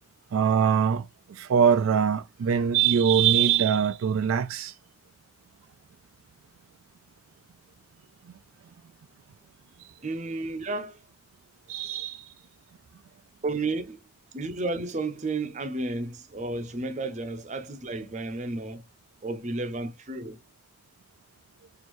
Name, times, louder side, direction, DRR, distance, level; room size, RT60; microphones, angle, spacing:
voice 1, 0.3-4.7 11.7-12.2, right 8 dB, 75° right, 0.3 m, -23 dB
voice 2, 10.0-11.0 13.4-14.0 14.3-18.8 19.2-20.4, right 2 dB, 35° right, 0.6 m, -32 dB
4.4 x 2.6 x 3.0 m
head